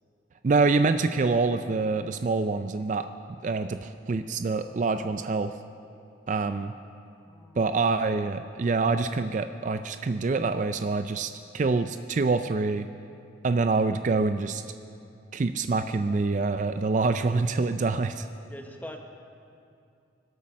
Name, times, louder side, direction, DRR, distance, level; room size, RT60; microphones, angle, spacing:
voice 1, 0.4-3.1 3.4-5.6 6.3-6.7 7.6-12.9 13.4-14.6 15.3-18.3, right 3 dB, 40° right, 9 dB, 0.3 m, -26 dB
voice 2, 7.2-7.8 18.5-19.0, left 1 dB, 10° left, 3 dB, 1.1 m, -43 dB
24.5 x 8.4 x 6.3 m, 2.5 s
head